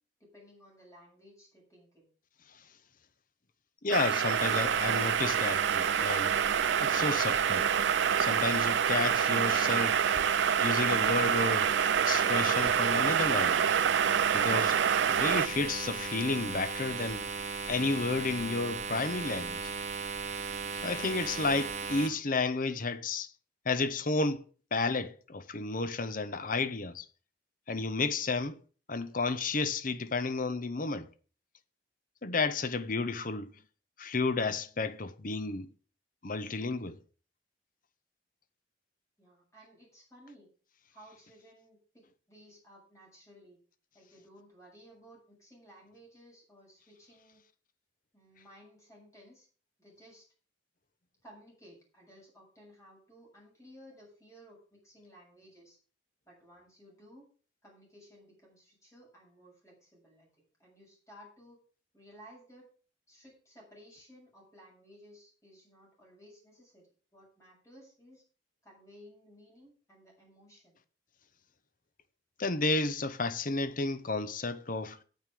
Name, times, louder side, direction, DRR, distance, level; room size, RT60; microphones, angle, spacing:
voice 1, 0.2-2.1 39.2-40.5 40.9-43.6 43.9-47.4 48.1-49.5 49.8-50.2 51.2-55.8 56.3-57.3 57.6-61.6 61.9-62.7 63.1-68.2 68.6-70.8, equal, 15° left, 7.0 m, -57 dB
voice 2, 3.8-6.3 6.8-7.7 8.2-10.0 10.6-11.7 12.1-13.7 14.3-14.8 15.1-17.3 17.7-19.6 20.8-23.3 23.6-24.4 24.7-27.1 27.7-28.6 28.9-31.1 32.2-33.5 34.0-35.7 36.2-37.0 72.4-75.0, left 3 dB, 50° left, 0.9 m, -31 dB
sound 1, 3.9-15.5, right 8 dB, 85° right, 0.4 m, -27 dB
sound 2, 4.3-22.1, right 5 dB, 40° right, 1.3 m, -37 dB
9.4 x 8.7 x 6.2 m
head